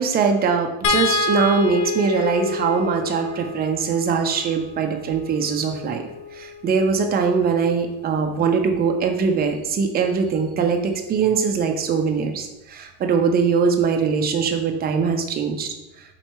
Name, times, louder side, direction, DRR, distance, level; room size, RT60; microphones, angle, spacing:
voice 1, 0.0-6.0 6.3-15.8, right 5 dB, 25° right, 4 dB, 0.4 m, -22 dB
sound 1, 0.8-7.2 8.7-8.9 9.2-9.4, left 4 dB, 45° left, 0.6 m, -29 dB
4.5 x 2.8 x 4.2 m, 0.97 s
cardioid pair, 135°, 42 cm